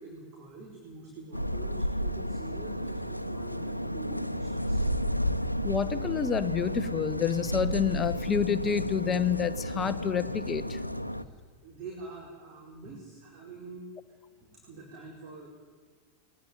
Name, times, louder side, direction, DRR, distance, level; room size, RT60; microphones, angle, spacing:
voice 1, 0.0-4.9 11.1-11.3 11.6-15.5, right 3 dB, 40° right, 0 dB, 4.7 m, -46 dB
sound 1, 1.3-11.2, equal, 90° left, 0.8 m, -32 dB
voice 2, 5.6-10.8, left 8 dB, 20° left, 14 dB, 1.0 m, -28 dB
21.5 x 19.0 x 9.6 m, 1.5 s
figure-of-eight pair, 90°, 0 cm